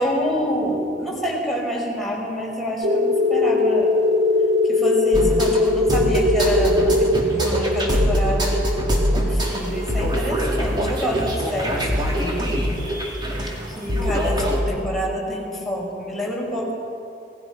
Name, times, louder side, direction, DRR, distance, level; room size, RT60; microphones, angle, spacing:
voice 1, 0.0-3.9 4.6-8.6 9.1-12.4 13.5-16.7, equal, ahead, -4 dB, 6.1 m, -27 dB
sound 1, 2.8-11.2, left 2 dB, 75° right, 1.4 m, -21 dB
sound 2, 5.1-14.6, equal, 25° right, 3.8 m, -23 dB
28.0 x 20.5 x 6.2 m, 2.6 s
head